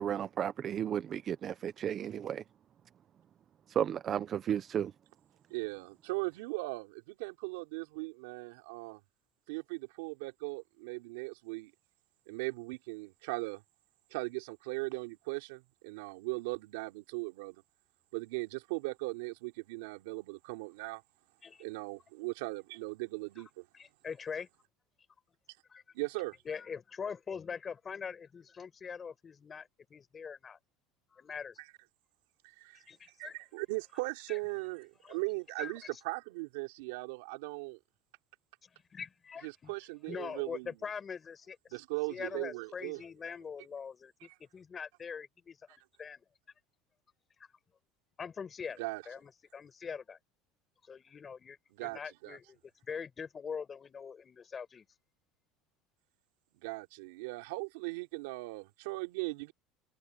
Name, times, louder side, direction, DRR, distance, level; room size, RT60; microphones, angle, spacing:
voice 1, 0.0-2.4 3.7-4.9, right 9 dB, 25° right, 0.4 m, -33 dB
voice 2, 5.5-9.0 9.5-11.7 12.3-13.6 14.1-17.6 18.1-21.0 21.6-23.6 25.9-26.4 32.4-32.8 33.2-37.8 39.4-40.7 41.7-43.0 48.8-49.0 51.7-52.4 56.6-59.5, right 25 dB, 85° right, 3.6 m, -38 dB
voice 3, 23.7-24.5 25.7-25.8 26.4-30.6 31.1-31.6 32.7-33.4 34.3-34.4 35.0-35.2 35.6-36.0 38.6-39.7 40.1-41.8 42.1-45.6 46.0-46.2 48.2-50.2 50.8-52.6 52.8-54.8, left 6 dB, 20° left, 5.8 m, -43 dB
cardioid pair, 170°, 0 cm